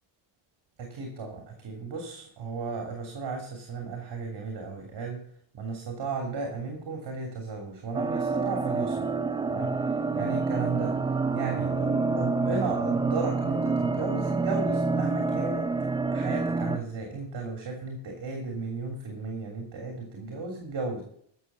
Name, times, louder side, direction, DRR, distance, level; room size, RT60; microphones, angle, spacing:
voice 1, 0.8-5.2 5.5-9.1 9.5-9.8 10.1-11.0 11.3-15.7 16.1-21.0, right 4 dB, 55° right, 2 dB, 3.3 m, -35 dB
sound 1, 7.9-16.8, right 4 dB, 10° right, 0.5 m, -27 dB
14.0 x 6.9 x 6.9 m, 0.64 s
cardioid pair, 120°, 48 cm